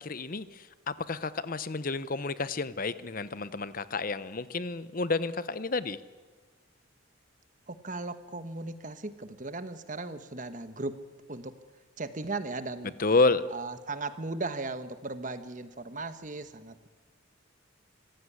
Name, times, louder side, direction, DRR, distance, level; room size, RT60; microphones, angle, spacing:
voice 1, 0.0-6.0 13.0-13.4, left 3 dB, 40° left, 15 dB, 0.8 m, -30 dB
voice 2, 7.7-11.0 11.3-11.6 12.0-12.9 13.5-16.9, right 3 dB, 40° right, 11 dB, 1.3 m, -37 dB
25.0 x 16.0 x 9.7 m, 1.4 s
head